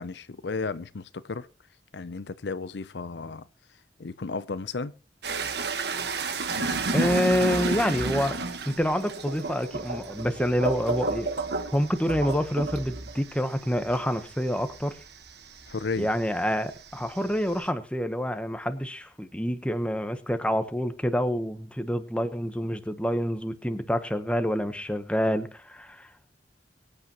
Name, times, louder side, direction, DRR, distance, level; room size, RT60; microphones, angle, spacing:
voice 1, 0.0-1.5 1.9-3.5 4.0-4.9 6.5-6.9 15.7-16.1, left 4 dB, 70° left, 0.6 m, -34 dB
sound 1, 5.2-16.2 16.5-17.7, right 3 dB, 65° right, 1.4 m, -31 dB
voice 2, 6.9-8.4 8.7-11.3 11.7-15.0 16.0-26.1, equal, 5° left, 1.1 m, -27 dB
23.5 x 8.9 x 3.0 m
head